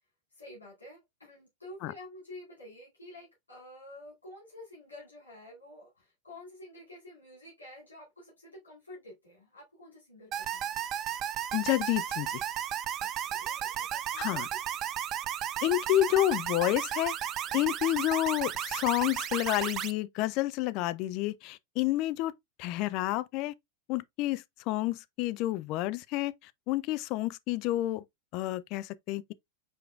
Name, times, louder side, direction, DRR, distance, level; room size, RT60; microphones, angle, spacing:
voice 1, 0.3-10.8 13.0-14.6 17.5-17.8, left 1 dB, 80° left, 2.4 m, -50 dB
sound 1, 10.3-19.9, right 10 dB, 30° right, 0.4 m, -34 dB
voice 2, 11.5-12.4 14.2-14.5 15.6-17.2 17.5-22.3 22.6-23.5 23.9-28.0 28.3-29.3, left 15 dB, 40° left, 0.4 m, -29 dB
4.7 x 4.7 x 2.4 m
figure-of-eight pair, 90°, 0 cm